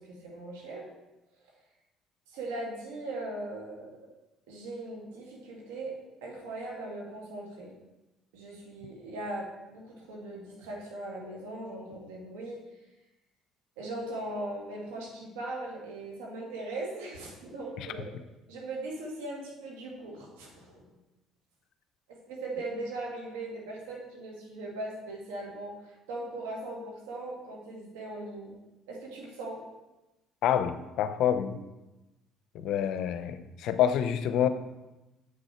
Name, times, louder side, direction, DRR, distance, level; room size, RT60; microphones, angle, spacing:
voice 1, 0.1-0.8 2.3-3.9 4.5-5.9 6.2-7.7 8.3-12.6 13.8-18.0 18.5-20.8 22.1-28.5 28.9-29.6, right 2 dB, 85° right, -2 dB, 2.1 m, -39 dB
voice 2, 30.4-31.6 32.5-34.5, left 9 dB, 70° left, 11 dB, 0.6 m, -27 dB
8.0 x 6.2 x 4.4 m, 1.0 s
hypercardioid pair, 65°, 0 cm